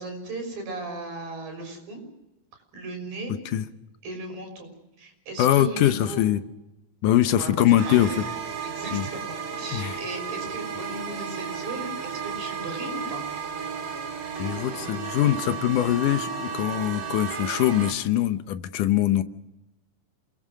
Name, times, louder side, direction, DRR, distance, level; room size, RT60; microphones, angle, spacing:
voice 1, 0.0-2.0 2.7-3.3 4.0-4.7 5.0-6.2 7.3-8.2 8.6-13.2 14.7-15.2, right 2 dB, 75° right, 3 dB, 7.7 m, -36 dB
voice 2, 3.3-3.7 5.4-6.4 7.0-8.1 8.9-9.0 9.7-10.0 14.4-19.2, left 12 dB, 70° left, 10 dB, 2.3 m, -22 dB
sound 1, 7.8-17.9, right 6 dB, 55° right, 3.3 m, -33 dB
28.0 x 20.5 x 6.5 m, 0.94 s
omnidirectional pair, 4.1 m